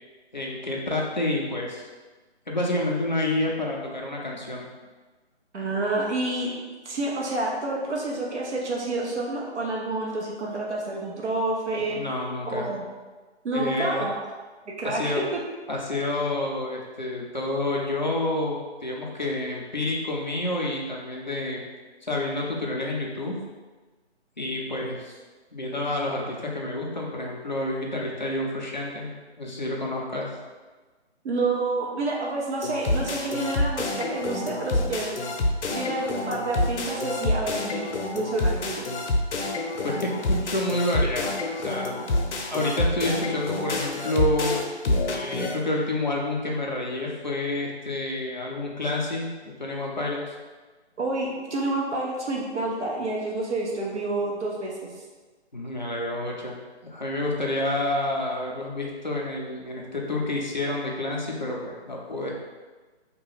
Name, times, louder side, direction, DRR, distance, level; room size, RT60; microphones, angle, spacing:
voice 1, 0.3-1.9 2.5-4.7 11.8-12.8 13.5-14.1 14.8-15.2 15.7-21.6 22.0-23.4 24.4-25.2 25.5-29.1 29.4-30.3 39.8-42.0 42.5-44.7 45.0-50.2 55.5-56.6 56.9-62.3, left 1 dB, 45° left, -2 dB, 0.4 m, -29 dB
voice 2, 5.5-6.5 6.8-12.0 12.5-12.8 13.4-14.2 14.7-15.4 31.2-35.2 35.7-38.8 51.0-54.7, right 2 dB, 80° right, -3 dB, 0.8 m, -28 dB
sound 1, 32.6-45.5, left 2 dB, 90° left, 0.6 m, -27 dB
2.7 x 2.2 x 3.1 m, 1.3 s
hypercardioid pair, 175°, 34 cm